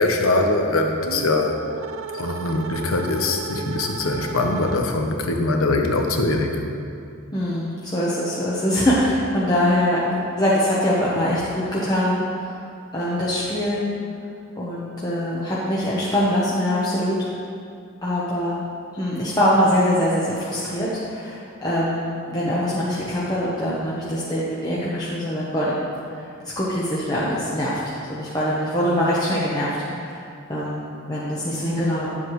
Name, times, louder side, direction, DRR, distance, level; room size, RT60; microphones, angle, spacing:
voice 1, 0.0-1.6 2.1-6.6, left 2 dB, 80° left, 3 dB, 0.9 m, -22 dB
sound 1, 1.0-5.2, right 5 dB, 70° right, 0.3 m, -35 dB
voice 2, 7.3-12.6 12.9-13.9 14.6-17.3 18.0-18.6 18.9-25.7 26.1-27.8 28.1-29.7 30.0-30.2 30.5-30.8 31.1-32.1, equal, 20° left, -8 dB, 0.9 m, -23 dB
10.0 x 7.3 x 3.2 m, 2.5 s
head